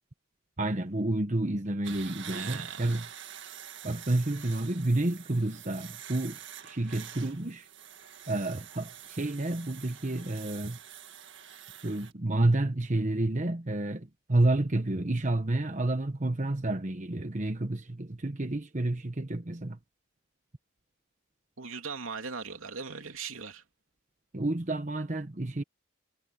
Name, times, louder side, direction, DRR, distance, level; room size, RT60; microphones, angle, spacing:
voice 1, 0.6-3.1 3.8-7.7 8.3-10.8 11.8-19.8 24.3-25.6, right 2 dB, 35° right, 1.1 m, -30 dB
sound 1, 1.8-12.1, right 9 dB, 60° right, 1.9 m, -46 dB
voice 2, 2.3-3.0 21.6-23.6, right 5 dB, 85° right, 3.0 m, -39 dB
head